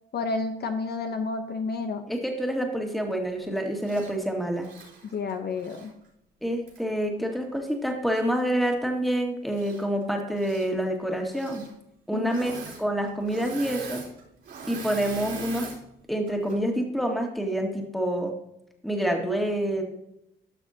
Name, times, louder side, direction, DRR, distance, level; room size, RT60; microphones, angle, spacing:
voice 1, 0.1-2.1 5.0-5.9 12.1-12.4, left 4 dB, 55° left, 6 dB, 0.9 m, -30 dB
voice 2, 2.1-4.7 6.4-11.6 12.1-14.0 14.7-15.7 16.1-18.3 18.8-19.8, right 1 dB, ahead, 2 dB, 1.9 m, -27 dB
Engine / Mechanisms, 3.8-4.1 4.6-5.9 6.7-6.8 9.5-10.0 10.3-10.7 11.3-11.7 12.2-12.8 13.1-15.8 16.3-16.6, right 4 dB, 65° right, 3.3 m, -41 dB
12.5 x 6.0 x 2.8 m, 0.80 s
cardioid pair, 90°, 20 cm